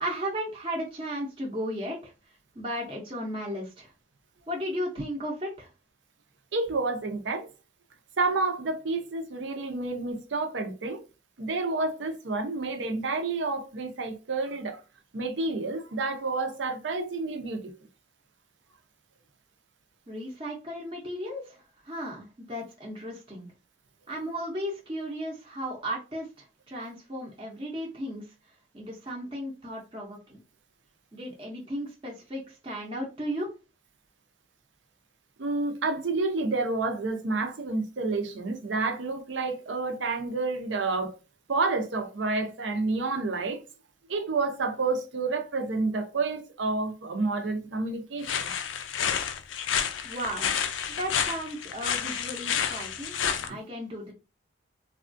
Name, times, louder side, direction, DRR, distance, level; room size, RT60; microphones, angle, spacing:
voice 1, 0.0-2.1 2.6-3.9 4.5-5.7 20.1-23.5 24.1-26.3 26.7-28.2 28.7-30.4 31.1-33.5 50.0-50.5 51.0-54.1, equal, 25° right, 0.6 m, -35 dB
voice 2, 6.5-7.5 8.2-11.0 11.4-14.8 15.1-17.7 35.4-41.1 41.5-43.6 44.1-48.4 53.5-53.6, right 3 dB, 80° right, 0.6 m, -29 dB
sound 1, 48.2-53.5, left 8 dB, 85° left, 0.4 m, -30 dB
3.4 x 2.3 x 2.5 m
head